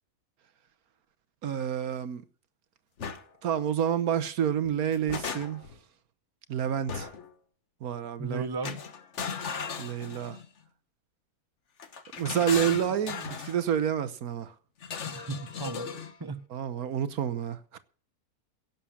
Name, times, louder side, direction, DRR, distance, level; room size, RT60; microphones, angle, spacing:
voice 1, 1.4-2.2 3.4-5.7 6.5-7.1 7.8-8.5 9.8-10.4 12.2-14.5 16.5-17.8, right 9 dB, 75° right, 1.4 m, -29 dB
sound 1, 3.0-3.2 4.7-5.8 6.9-7.3 8.6-10.5 11.8-13.6 14.8-16.2, left 6 dB, 50° left, 1.4 m, -37 dB
voice 2, 8.2-8.8 15.1-15.9 16.2-16.4, right 4 dB, 15° right, 1.1 m, -35 dB
17.0 x 7.4 x 7.2 m
omnidirectional pair, 1.6 m